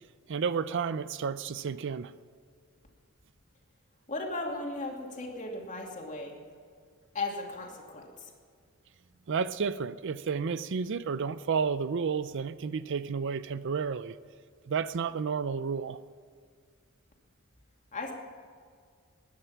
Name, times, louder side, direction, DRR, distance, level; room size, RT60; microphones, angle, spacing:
voice 1, 0.3-2.1 9.3-14.2 14.7-16.0, right 6 dB, 55° right, 15 dB, 0.5 m, -31 dB
voice 2, 4.1-6.4 7.1-8.3 17.9-18.1, left 2 dB, 35° left, 0 dB, 2.6 m, -36 dB
20.0 x 10.0 x 5.8 m, 2.1 s
head